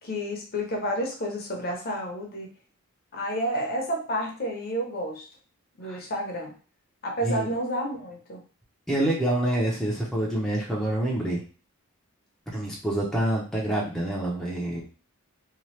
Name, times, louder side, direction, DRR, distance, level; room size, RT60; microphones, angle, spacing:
voice 1, 0.0-2.5 3.1-5.3 5.8-6.5 7.0-8.4, equal, 45° left, 1 dB, 0.7 m, -30 dB
voice 2, 8.9-11.4 12.5-14.8, right 1 dB, ahead, -4 dB, 0.5 m, -27 dB
2.8 x 2.3 x 3.1 m, 0.37 s
head